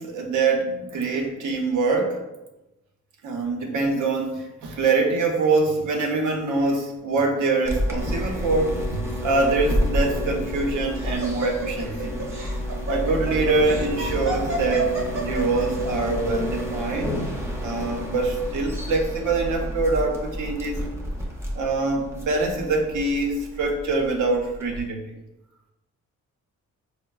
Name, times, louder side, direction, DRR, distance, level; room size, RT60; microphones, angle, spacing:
voice 1, 0.0-2.2 3.2-12.2 12.9-17.1 17.6-20.8 21.5-25.0, right 3 dB, 80° right, 2 dB, 0.6 m, -24 dB
sound 1, 7.6-24.9, equal, 10° right, 0.5 m, -30 dB
Laughter, 10.3-15.8, right 2 dB, 45° right, 0.8 m, -31 dB
4.5 x 2.0 x 2.3 m, 0.98 s
cardioid pair, 110°, 30 cm